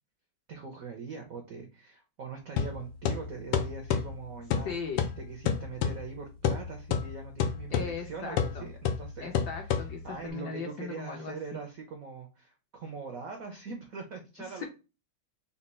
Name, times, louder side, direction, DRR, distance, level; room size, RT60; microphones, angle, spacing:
voice 1, 0.5-4.7 5.2-9.3 9.7-14.7, right 4 dB, 75° right, 4 dB, 0.7 m, -42 dB
sound 1, 2.6-10.3, left 7 dB, 85° left, 1.6 m, -32 dB
voice 2, 4.6-5.1 7.7-8.7 9.2-11.6 14.5-14.7, left 5 dB, 70° left, 3 dB, 1.0 m, -38 dB
4.2 x 2.3 x 4.1 m, 0.30 s
omnidirectional pair, 2.4 m